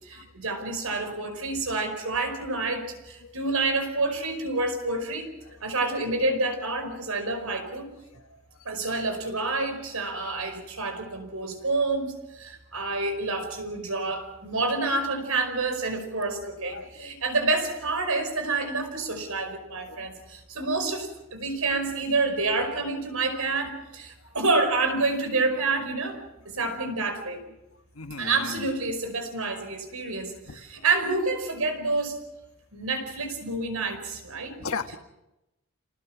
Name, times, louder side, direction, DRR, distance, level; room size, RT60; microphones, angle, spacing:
voice 1, 0.0-5.3 5.6-7.9 8.7-26.2 26.5-27.4 28.2-32.2 32.7-34.6, right 3 dB, 90° right, 6 dB, 5.2 m, -28 dB
voice 2, 16.7-17.1 19.9-20.0 28.0-28.6 34.6-35.0, left 4 dB, 80° left, 8 dB, 1.4 m, -35 dB
28.5 x 19.5 x 6.1 m, 0.94 s
head